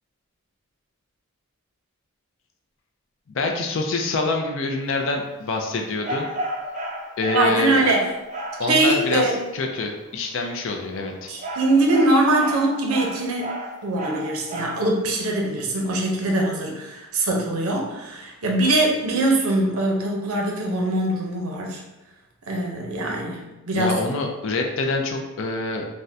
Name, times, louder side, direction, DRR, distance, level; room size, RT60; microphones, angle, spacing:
voice 1, 3.3-6.3 7.2-7.8 8.6-11.3 23.7-25.9, left 3 dB, 60° left, 2 dB, 0.4 m, -26 dB
sound 1, 6.0-8.7 10.8-14.9, right 1 dB, 35° right, 0.4 m, -32 dB
voice 2, 7.3-8.1 8.6-9.4 11.3-13.5 13.8-21.8 22.5-23.9, right 2 dB, 85° right, 0 dB, 0.6 m, -22 dB
3.5 x 2.1 x 2.6 m, 1.0 s
head